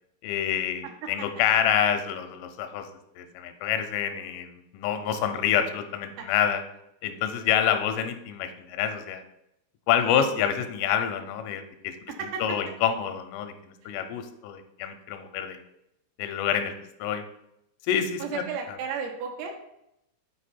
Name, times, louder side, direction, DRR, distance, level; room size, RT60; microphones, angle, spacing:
voice 1, 0.2-2.9 3.2-6.6 7.0-9.2 9.9-12.0 12.4-15.6 16.2-16.7 17.0-17.2 17.9-18.4, left 9 dB, 85° left, 8 dB, 3.0 m, -27 dB
voice 2, 0.8-1.3 6.2-6.3 10.0-10.3 12.1-12.7 13.8-13.9 18.2-19.6, right 6 dB, 85° right, 1 dB, 3.9 m, -35 dB
8.1 x 4.7 x 4.3 m, 0.82 s
omnidirectional pair, 5.8 m